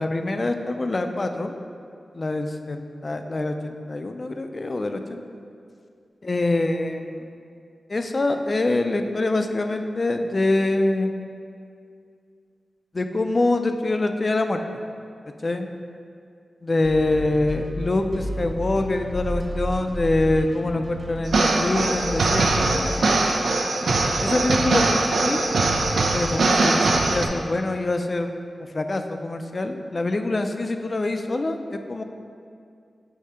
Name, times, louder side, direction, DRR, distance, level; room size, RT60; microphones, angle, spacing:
voice 1, 0.0-1.5 2.1-5.2 6.2-7.2 7.9-11.1 12.9-14.6 15.4-15.7 16.6-22.9 24.2-25.4 26.1-28.3 28.7-32.0, left 2 dB, 40° left, 6 dB, 0.4 m, -25 dB
sound 1, 16.8-23.1, equal, 25° right, 0.9 m, -32 dB
sound 2, 21.3-27.3, right 2 dB, 85° right, 0.5 m, -21 dB
8.2 x 2.8 x 5.6 m, 2.3 s
wide cardioid pair, 90°, 0 cm